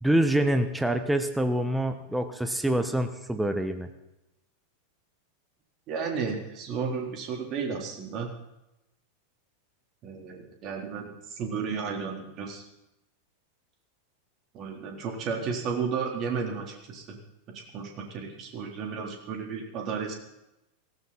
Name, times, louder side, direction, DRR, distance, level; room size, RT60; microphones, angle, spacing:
voice 1, 0.0-3.9, right 1 dB, 5° right, 8 dB, 1.4 m, -26 dB
voice 2, 5.9-8.3 10.0-12.6 14.5-17.2 17.5-20.1, right 5 dB, 35° right, 2 dB, 3.9 m, -33 dB
18.0 x 17.5 x 4.4 m, 0.90 s
figure-of-eight pair, 90°, 0 cm